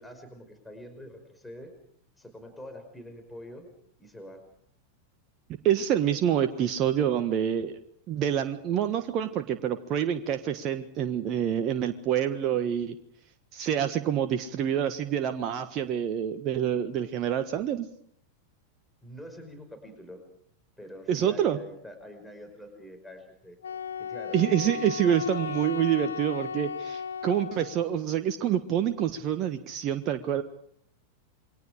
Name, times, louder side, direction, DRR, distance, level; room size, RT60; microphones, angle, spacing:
voice 1, 0.0-1.7 2.2-3.7 4.0-4.4 19.0-20.2 20.8-23.6 24.0-24.8, equal, 5° left, 5 dB, 5.2 m, -45 dB
voice 2, 5.5-7.8 8.1-13.0 13.5-17.9 21.1-21.6 24.3-30.4, right 9 dB, 35° right, 8 dB, 1.5 m, -27 dB
Wind instrument woodwind instrument, 23.6-27.9, left 6 dB, 70° left, 0.9 m, -36 dB
28.5 x 23.5 x 5.0 m, 0.65 s
figure-of-eight pair, 90°, 0 cm